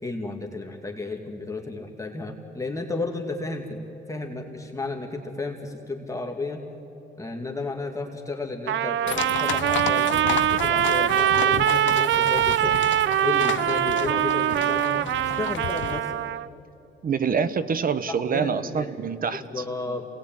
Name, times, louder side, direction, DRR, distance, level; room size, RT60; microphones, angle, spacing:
voice 1, 0.0-3.8 4.1-6.6 7.2-12.7 13.2-15.1 15.4-16.2 18.1-18.9 19.5-20.1, left 3 dB, 15° left, 2 dB, 2.4 m, -33 dB
Trumpet, 8.7-16.5, right 12 dB, 70° right, 0.6 m, -23 dB
sound 1, 9.1-16.0, left 11 dB, 70° left, 0.8 m, -32 dB
voice 2, 17.0-19.6, right 6 dB, 45° right, 13 dB, 1.3 m, -26 dB
27.5 x 19.0 x 9.1 m, 2.9 s
cardioid pair, 90°, 20 cm